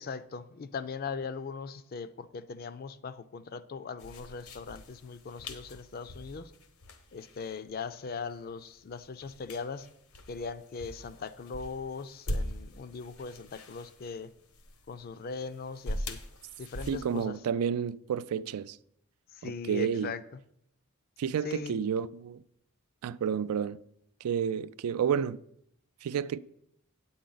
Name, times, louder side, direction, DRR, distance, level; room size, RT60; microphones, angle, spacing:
voice 1, 0.0-6.5 7.1-9.9 10.3-14.3 14.9-16.2 16.6-17.4 19.3-20.2 21.4-21.8, left 5 dB, 45° left, 0.4 m, -39 dB
sound 1, 4.0-17.3, equal, 80° left, 1.0 m, -42 dB
voice 2, 16.9-18.8 19.4-20.1 21.2-22.4 23.0-23.8 24.2-25.4 26.0-26.4, right 7 dB, 85° right, 0.3 m, -30 dB
9.0 x 8.7 x 3.9 m
head